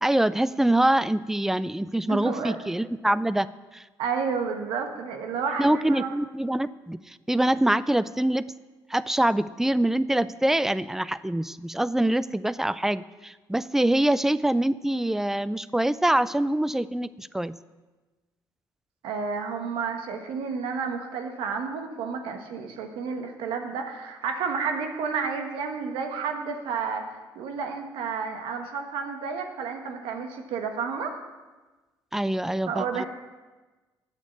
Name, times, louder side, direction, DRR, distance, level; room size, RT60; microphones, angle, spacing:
voice 1, 0.0-3.5 3.7-3.8 5.6-8.4 8.9-17.5 32.1-33.1, right 1 dB, 5° right, 17 dB, 0.4 m, -24 dB
voice 2, 2.1-2.6 4.0-6.1 19.0-31.2 32.7-33.1, right 5 dB, 85° right, 5 dB, 1.2 m, -31 dB
8.1 x 6.6 x 8.3 m, 1.2 s
supercardioid pair, 75°, 9 cm